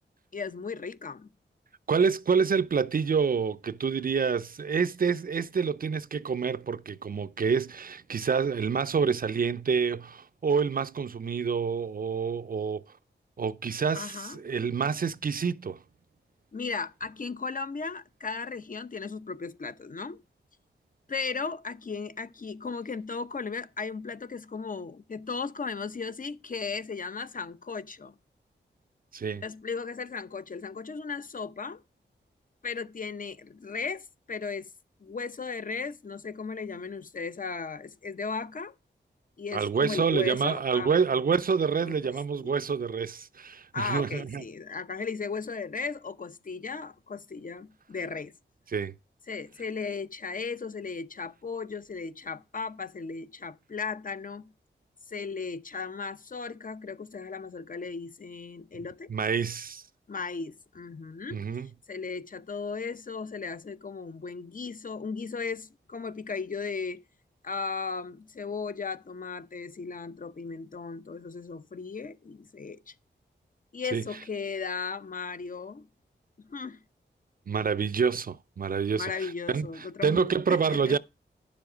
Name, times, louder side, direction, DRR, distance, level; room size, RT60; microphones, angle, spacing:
voice 1, 0.3-1.3 13.9-14.4 16.5-20.2 21.1-28.1 29.4-31.8 32.6-34.7 35.0-38.7 39.4-40.9 41.8-42.0 42.4-42.5 43.7-48.3 49.3-54.5 55.1-59.1 60.1-61.4 61.9-67.0 67.4-72.9 73.7-75.9 76.5-76.8 79.0-81.0, left 5 dB, 45° left, 0.8 m, -36 dB
voice 2, 1.9-12.8 13.4-15.8 29.1-29.4 39.5-44.4 48.7-48.9 59.1-59.8 61.3-61.7 73.9-74.0 77.5-79.7 80.0-81.0, right 6 dB, 50° right, 0.5 m, -27 dB
10.5 x 7.0 x 5.0 m
wide cardioid pair, 75°, 19 cm